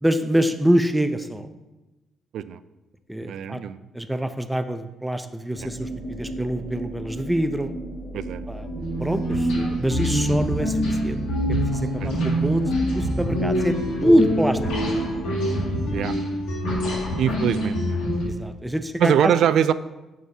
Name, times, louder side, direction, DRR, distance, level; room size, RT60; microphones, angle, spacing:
voice 1, 0.0-1.5 3.1-3.6 3.9-7.7 8.5-8.7 9.0-11.2 11.7-12.6 12.9-14.6 18.2-19.3, equal, 5° right, 9 dB, 0.6 m, -24 dB
voice 2, 3.2-3.8 8.1-8.4 12.0-12.3 15.9-16.2 17.2-18.0 19.0-19.7, right 9 dB, 75° right, 14 dB, 0.3 m, -23 dB
sound 1, 5.5-16.0, right 2 dB, 35° left, 1.6 m, -35 dB
sound 2, 8.6-18.2, equal, 90° left, 2.3 m, -25 dB
9.2 x 6.2 x 2.9 m, 1.1 s
cardioid pair, 90°, 0 cm